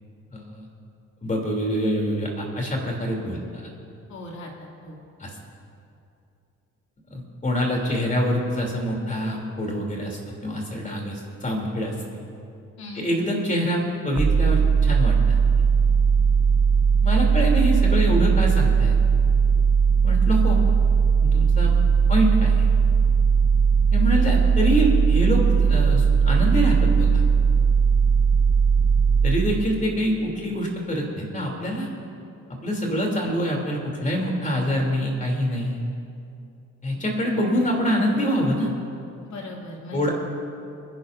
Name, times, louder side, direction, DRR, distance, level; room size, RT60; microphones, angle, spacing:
voice 1, 0.3-0.7 1.2-3.7 5.2-5.4 7.1-12.2 12.9-15.4 17.0-19.0 20.0-20.6 21.2-21.7 22.1-22.7 23.9-27.2 29.2-31.9 32.6-35.8 36.8-38.7 39.9-40.1, equal, 25° left, -1 dB, 3.2 m, -25 dB
voice 2, 4.1-5.0 12.8-13.1 39.2-40.1, left 1 dB, 65° left, -2 dB, 2.8 m, -38 dB
sound 1, 14.2-29.9, right 6 dB, 15° right, 0.4 m, -19 dB
27.5 x 11.0 x 2.7 m, 2.6 s
cardioid pair, 90°, 30 cm